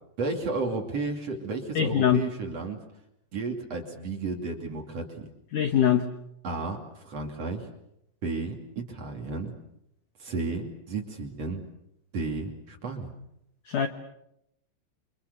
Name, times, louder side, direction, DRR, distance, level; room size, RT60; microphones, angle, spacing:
voice 1, 0.2-2.8 3.3-5.3 6.4-7.7 8.2-9.5 10.2-11.6 12.1-13.1, right 3 dB, 40° right, 2 dB, 3.1 m, -33 dB
voice 2, 1.8-2.2 5.5-6.0 13.7-13.9, left 9 dB, 70° left, 7 dB, 2.0 m, -22 dB
29.0 x 26.0 x 6.9 m, 0.81 s
omnidirectional pair, 5.4 m